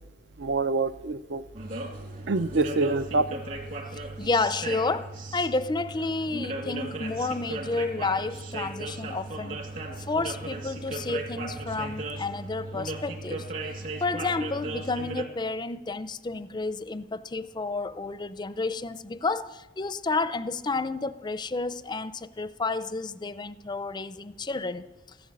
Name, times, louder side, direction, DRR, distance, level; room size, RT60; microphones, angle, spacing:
voice 1, 0.4-1.4 2.3-3.3, right 3 dB, 65° right, 0.5 m, -26 dB
sound 1, 1.5-15.2, right 2 dB, 45° right, 2.2 m, -36 dB
voice 2, 4.2-9.6 10.0-13.5 14.0-24.9, left 3 dB, 25° left, 0.5 m, -30 dB
14.5 x 12.0 x 7.5 m
head